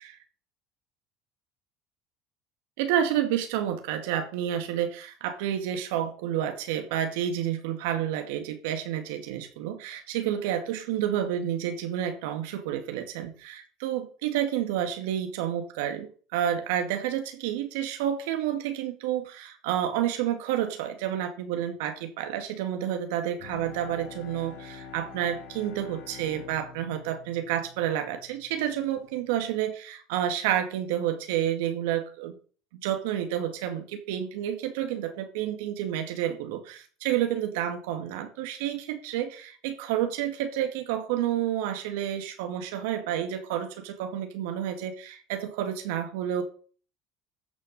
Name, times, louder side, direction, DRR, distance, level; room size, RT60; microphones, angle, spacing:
voice 1, 2.8-32.3 32.7-46.4, right 10 dB, 80° right, 6 dB, 2.3 m, -30 dB
Bowed string instrument, 23.4-28.8, left 6 dB, 90° left, 4.3 m, -46 dB
14.0 x 6.7 x 5.6 m, 0.41 s
supercardioid pair, 105°, 0 cm